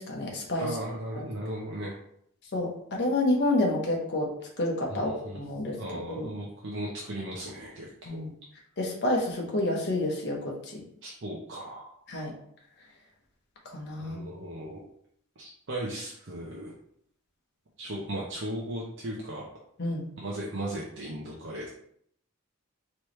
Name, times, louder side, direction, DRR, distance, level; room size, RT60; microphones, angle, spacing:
voice 1, 0.0-0.7 1.2-1.3 2.5-4.3 4.6-5.8 6.1-6.3 8.0-8.3 8.8-10.8 12.1-12.3 13.6-14.3 19.8-20.0, left 1 dB, 50° left, -1 dB, 1.0 m, -29 dB
voice 2, 0.6-2.0 4.9-5.4 5.8-8.2 11.0-12.0 14.0-14.8 15.4-16.7 17.8-19.4 20.2-21.7, right 1 dB, 55° right, -4 dB, 0.7 m, -36 dB
4.6 x 3.1 x 3.1 m, 0.68 s
head